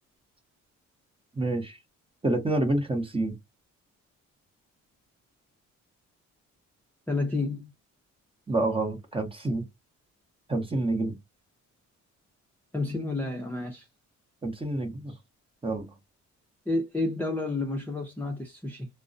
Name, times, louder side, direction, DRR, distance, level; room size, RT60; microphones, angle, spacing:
voice 1, 1.4-1.8 2.2-3.4 8.5-9.7 10.5-11.2 14.4-15.1 15.6-15.9, right 2 dB, 20° right, 0.9 m, -28 dB
voice 2, 7.1-7.7 12.7-13.9 16.7-18.9, left 2 dB, 5° left, 0.5 m, -30 dB
2.3 x 2.1 x 2.5 m
cardioid pair, 90°, 30 cm